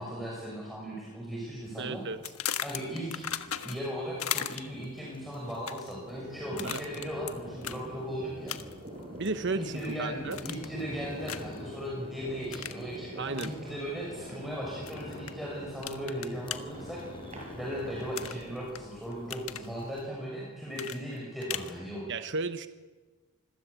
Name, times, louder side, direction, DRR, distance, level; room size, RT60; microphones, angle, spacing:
voice 1, 0.0-2.0 2.6-3.2 3.6-8.6 9.6-17.0 17.6-22.2, equal, ahead, -5 dB, 6.4 m, -37 dB
sound 1, 1.6-20.0, left 1 dB, 25° left, 5.2 m, -52 dB
voice 2, 1.8-2.2 6.6-6.8 9.2-10.4 13.2-13.5 22.1-22.7, right 3 dB, 55° right, 10 dB, 1.1 m, -33 dB
sound 2, 2.2-3.9 4.2-4.8 5.5-6.0 6.6-7.3 7.6-7.8 8.5-8.9 9.3-9.9 10.3-10.8 11.3-11.6 12.5-12.8 13.3-13.5 14.9-15.3 15.8-16.6 18.1-18.8 19.1-19.7 20.7-21.7, left 10 dB, 85° left, 1.4 m, -36 dB
sound 3, 6.1-18.6, equal, 30° right, 6.8 m, -45 dB
27.0 x 21.5 x 8.3 m, 1.3 s
head